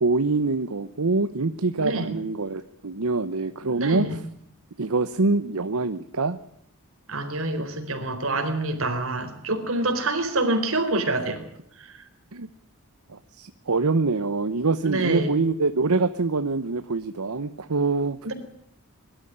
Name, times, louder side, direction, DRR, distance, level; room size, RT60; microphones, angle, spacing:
voice 1, 0.0-4.2 4.8-6.4 12.3-12.5 13.1-18.2, right 3 dB, 85° right, 11 dB, 1.0 m, -25 dB
voice 2, 1.8-2.1 3.7-4.2 7.1-11.4 11.8-11.9 14.8-15.3 18.2-18.3, right 2 dB, 65° right, 6 dB, 4.1 m, -26 dB
22.0 x 13.0 x 9.9 m, 0.73 s
head